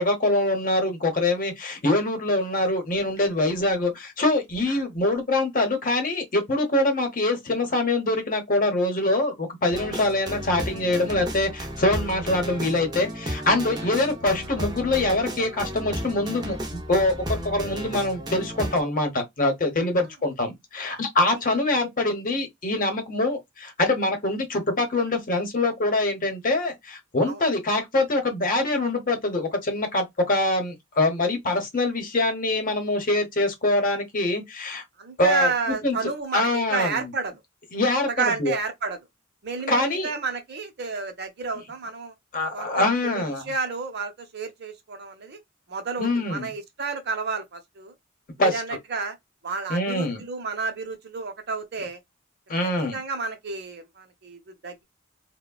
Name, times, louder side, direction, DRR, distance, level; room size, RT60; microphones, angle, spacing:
voice 1, 0.0-34.8 35.2-36.0 36.3-37.1 37.7-38.5 39.7-40.1 42.3-43.4 46.0-46.5 48.4-48.6 49.7-50.2 52.5-53.0, left 2 dB, 45° left, 0.9 m, -24 dB
sound 1, 9.7-18.8, equal, 20° right, 0.6 m, -33 dB
voice 2, 35.0-37.3 38.1-39.0 39.4-42.1 42.5-45.4 45.7-47.9 48.4-49.2 49.4-52.0 52.6-54.8, right 4 dB, 55° right, 0.7 m, -31 dB
3.4 x 2.1 x 2.3 m
head